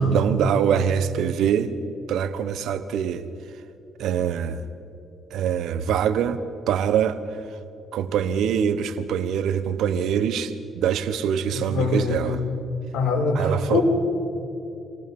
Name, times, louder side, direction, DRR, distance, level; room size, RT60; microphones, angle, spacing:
voice 1, 0.0-1.7 2.1-3.3 4.0-4.6 5.3-6.4 6.7-7.2 7.9-12.4 13.3-13.8, right 8 dB, 80° right, 12 dB, 1.2 m, -24 dB
voice 2, 11.4-12.3 12.9-13.8, left 3 dB, 80° left, 1 dB, 4.6 m, -23 dB
26.5 x 18.5 x 5.5 m, 2.8 s
cardioid pair, 90°, 0 cm